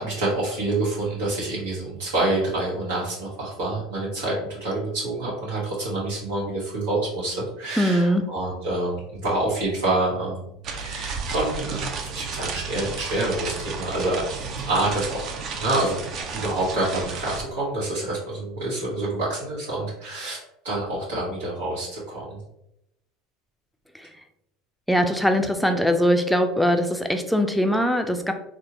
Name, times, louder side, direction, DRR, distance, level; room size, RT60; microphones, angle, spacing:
voice 1, 0.0-4.3 4.6-10.5 10.8-14.3 14.7-15.3 15.6-16.0 16.3-20.4 20.6-22.4, right 2 dB, 90° right, -7 dB, 1.1 m, -27 dB
voice 2, 7.8-8.3 24.0-24.1 24.9-28.3, equal, ahead, 6 dB, 0.4 m, -21 dB
sound 1, 10.6-17.4, right 5 dB, 50° right, 0.5 m, -32 dB
3.5 x 2.0 x 2.9 m, 0.81 s
supercardioid pair, 100°, 0 cm